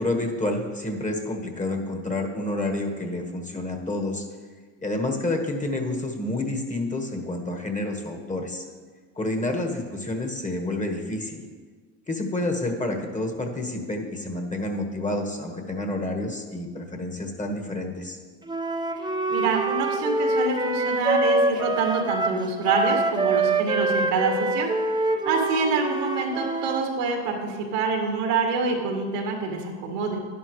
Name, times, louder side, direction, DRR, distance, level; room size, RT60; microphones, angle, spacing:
voice 1, 0.0-4.3 4.8-8.6 9.1-11.4 12.1-18.2, left 2 dB, 15° left, 3 dB, 1.6 m, -29 dB
Wind instrument woodwind instrument, 18.5-26.9, right 2 dB, 10° right, 0.8 m, -25 dB
voice 2, 19.3-24.7 25.2-30.2, right 4 dB, 85° right, 1 dB, 2.2 m, -26 dB
11.0 x 11.0 x 3.3 m, 1.5 s
hypercardioid pair, 75°, 46 cm